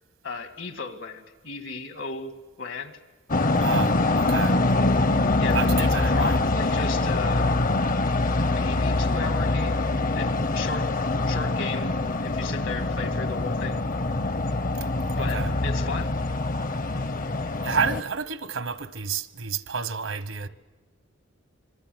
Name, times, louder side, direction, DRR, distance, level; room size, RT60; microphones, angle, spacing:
voice 1, 0.2-2.9 5.4-7.6 8.5-9.8 10.1-10.9 11.3-11.9 12.2-13.8 15.2-16.1, left 4 dB, 75° left, 2.0 m, -35 dB
sound 1, 3.3-18.0, left 2 dB, 45° left, 0.7 m, -24 dB
voice 2, 3.6-4.6 5.5-6.4 14.8-14.9 15.2-15.5 17.6-20.5, right 5 dB, 80° right, 1.2 m, -30 dB
26.5 x 23.0 x 7.9 m
head